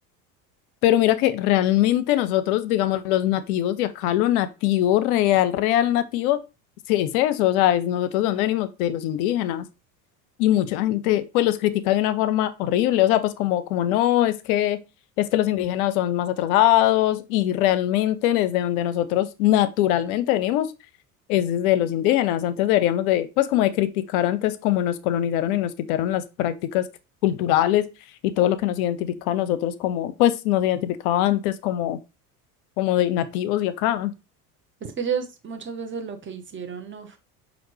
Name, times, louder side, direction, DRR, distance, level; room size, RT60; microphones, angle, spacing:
voice 1, 0.8-6.4 6.9-9.7 10.4-14.8 15.2-20.7 21.3-26.9 27.2-27.9 28.2-32.0 32.8-34.1, left 13 dB, 70° left, 0.6 m, -22 dB
voice 2, 34.8-37.2, right 6 dB, 25° right, 0.8 m, -31 dB
5.7 x 2.5 x 3.2 m
hypercardioid pair, 75°, 45 cm